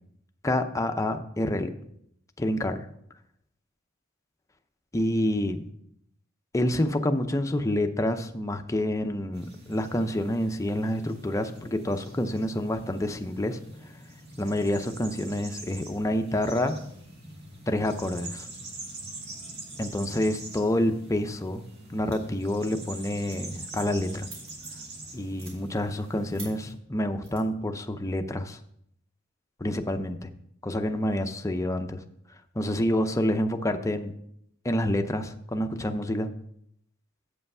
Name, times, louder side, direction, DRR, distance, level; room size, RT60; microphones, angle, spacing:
voice 1, 0.4-1.7 2.4-2.9 4.9-5.7 6.5-13.6 14.4-16.8 17.7-18.5 19.8-21.6 21.9-24.3 25.1-28.6 29.6-30.3 30.6-32.0 32.5-34.1 34.6-36.3, left 1 dB, 15° left, 7 dB, 0.6 m, -28 dB
sound 1, 9.3-26.7, right 2 dB, 55° right, 1.8 m, -44 dB
sound 2, 22.1-22.5 22.8-23.0 23.3-24.9 25.3-25.6 26.3-26.5 27.2-27.4, right 2 dB, 75° right, 3.5 m, -45 dB
8.4 x 5.6 x 5.5 m, 0.73 s
head